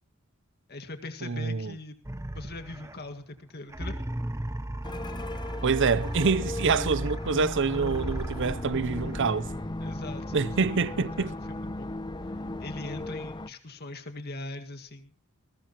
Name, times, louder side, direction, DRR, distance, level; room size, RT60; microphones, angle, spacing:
voice 1, 0.7-2.0 2.3-4.1 9.8-11.9 12.6-15.1, left 2 dB, 50° left, 1.9 m, -41 dB
voice 2, 1.2-1.7 5.6-9.5 10.3-11.3, right 4 dB, 60° right, 0.7 m, -26 dB
sound 1, 2.0-3.2 3.7-9.7, right 1 dB, 15° right, 0.8 m, -36 dB
sound 2, 4.8-13.5, left 2 dB, 20° left, 0.7 m, -37 dB
Wind, 7.8-13.3, equal, 65° left, 4.3 m, -43 dB
20.5 x 19.0 x 3.0 m
head